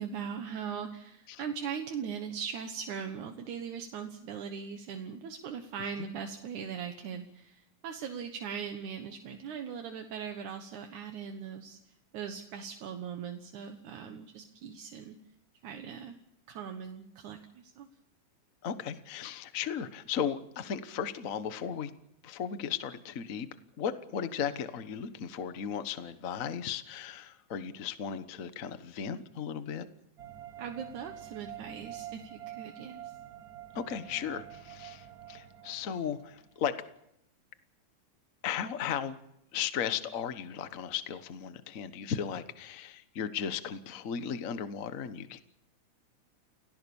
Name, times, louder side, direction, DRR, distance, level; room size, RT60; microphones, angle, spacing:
voice 1, 0.0-11.8 12.1-15.2 15.6-16.2 16.5-17.9 30.6-33.1, right 7 dB, 75° right, 5 dB, 2.7 m, -40 dB
voice 2, 18.6-21.9 22.2-23.5 23.8-29.9 33.7-36.7 38.4-39.2 39.5-45.4, left 8 dB, 75° left, 11 dB, 0.7 m, -36 dB
sound 1, 30.2-36.7, right 12 dB, 50° right, 1.1 m, -47 dB
29.5 x 17.0 x 7.1 m, 0.79 s
omnidirectional pair, 3.5 m